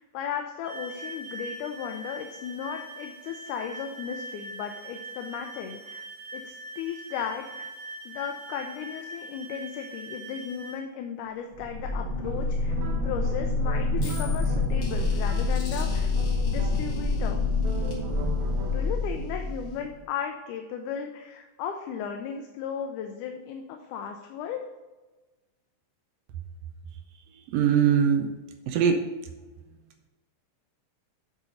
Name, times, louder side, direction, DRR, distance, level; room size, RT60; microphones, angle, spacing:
voice 1, 0.0-6.0 6.3-7.5 8.1-12.8 13.0-16.1 16.5-17.4 18.7-24.7, left 8 dB, 80° left, 4 dB, 2.1 m, -35 dB
sound 1, 0.6-10.8, right 2 dB, 5° right, 2.0 m, -42 dB
sound 2, 11.5-20.0, left 3 dB, 65° left, 3.4 m, -27 dB
sound 3, 12.2-17.2 17.6-19.1, right 1 dB, 65° right, 2.5 m, -40 dB
voice 2, 27.5-28.3 28.7-29.1, right 8 dB, 90° right, 4 dB, 1.4 m, -21 dB
9.0 x 4.0 x 5.0 m, 1.2 s
omnidirectional pair, 3.6 m